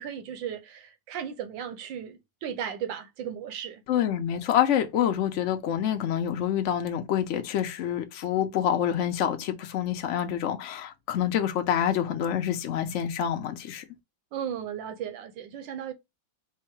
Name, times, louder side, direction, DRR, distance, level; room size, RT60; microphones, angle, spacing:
voice 1, 0.0-3.8 14.3-15.9, right 9 dB, 80° right, 1.4 m, -36 dB
voice 2, 3.9-13.8, left 10 dB, 70° left, 0.7 m, -27 dB
4.6 x 2.1 x 4.4 m
omnidirectional pair, 2.1 m